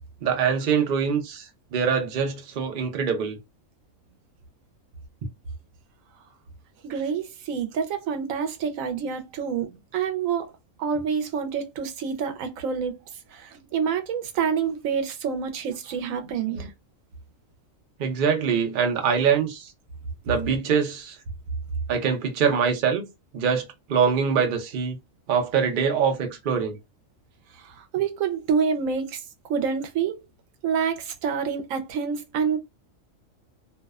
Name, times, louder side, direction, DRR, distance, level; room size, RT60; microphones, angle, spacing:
voice 1, 0.2-3.4 16.5-16.7 18.0-19.7 20.3-21.2 21.9-23.1 23.3-25.0 25.3-26.8, right 6 dB, 55° right, 0.6 m, -24 dB
voice 2, 6.8-10.5 10.8-13.0 13.3-16.7 27.7-29.2 29.5-30.2 30.6-32.6, right 6 dB, 80° right, 1.0 m, -27 dB
2.6 x 2.1 x 2.3 m
omnidirectional pair, 1.4 m